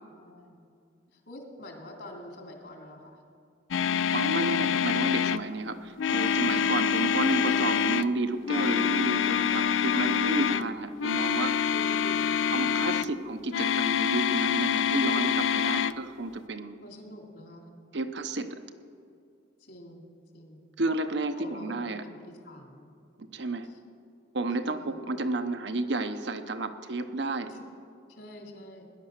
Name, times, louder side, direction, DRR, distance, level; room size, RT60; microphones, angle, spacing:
voice 1, 0.1-0.6 1.1-3.2 4.3-4.8 6.2-7.5 11.7-12.7 16.8-17.7 19.6-20.0 20.3-20.6 21.4-22.9 23.7-23.8 24.6-25.0 27.4-27.7 28.1-28.9, left 1 dB, 65° left, 2 dB, 2.7 m, -47 dB
sound 1, 3.7-5.5 6.0-8.1 8.5-10.7 11.0-13.1 13.5-15.9, left 8 dB, 90° left, 0.4 m, -26 dB
voice 2, 4.1-11.6 12.5-16.8 17.9-18.6 20.8-22.0 23.3-23.7 24.3-27.5, right 2 dB, 65° right, 8 dB, 0.8 m, -31 dB
17.5 x 11.0 x 6.5 m, 2.4 s
head